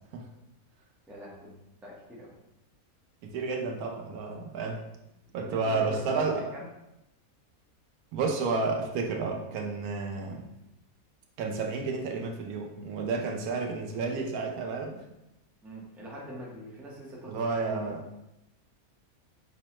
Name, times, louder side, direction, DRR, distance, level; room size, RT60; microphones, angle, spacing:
voice 1, 1.1-1.5 1.8-2.3 5.5-6.7 15.6-17.9, right 1 dB, ahead, -5 dB, 0.5 m, -43 dB
voice 2, 3.2-4.8 5.3-6.4 8.1-10.5 11.4-15.0 17.3-18.0, right 4 dB, 85° right, 2 dB, 1.1 m, -31 dB
5.3 x 2.1 x 2.9 m, 0.90 s
omnidirectional pair, 1.5 m